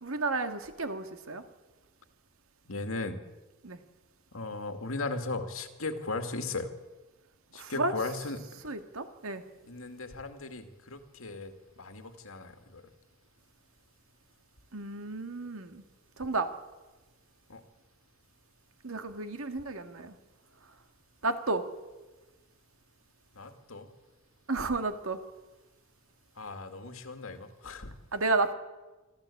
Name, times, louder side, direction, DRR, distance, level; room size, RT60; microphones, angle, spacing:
voice 1, 0.0-1.4 3.6-3.8 7.5-7.9 8.6-9.4 14.7-15.8 16.2-16.5 18.8-20.2 21.2-21.6 24.5-25.2 28.1-28.5, right 3 dB, 80° right, 7 dB, 1.9 m, -32 dB
voice 2, 2.7-3.2 4.3-6.7 7.5-8.6 9.7-12.9 17.5-17.6 23.3-23.9 26.4-27.9, left 3 dB, 80° left, 7 dB, 2.2 m, -37 dB
25.0 x 14.0 x 8.5 m, 1.2 s
head